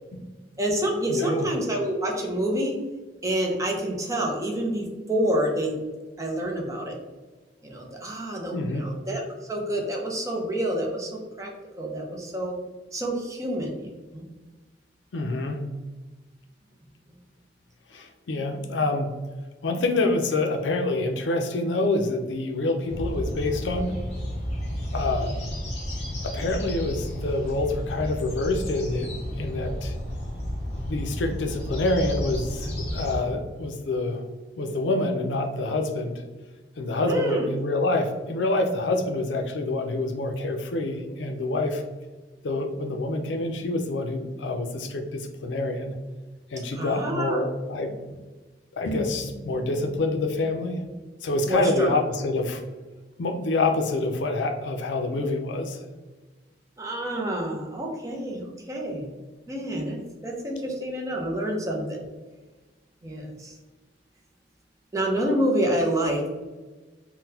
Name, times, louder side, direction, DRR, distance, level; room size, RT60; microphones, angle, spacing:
voice 1, 0.6-2.8 3.2-5.8 6.2-7.0 7.6-9.2 9.5-11.5 11.8-12.5 12.9-14.2 37.1-37.4 46.7-47.4 51.5-51.9 56.8-59.1 59.5-62.1 63.0-63.5 64.9-66.3, right 1 dB, 20° right, 0 dB, 0.5 m, -28 dB
voice 2, 1.1-1.5 8.5-8.9 15.1-15.7 17.9-19.1 19.6-23.9 24.9-25.3 26.2-29.1 29.4-29.9 30.9-34.2 34.6-36.2 36.8-41.8 42.4-46.0 46.5-48.2 48.7-50.9 51.2-52.6 53.2-55.8, left 2 dB, 90° left, 5 dB, 0.4 m, -27 dB
sound 1, 22.9-33.2, equal, 40° left, 0.8 m, -32 dB
3.8 x 2.1 x 2.7 m, 1.2 s
head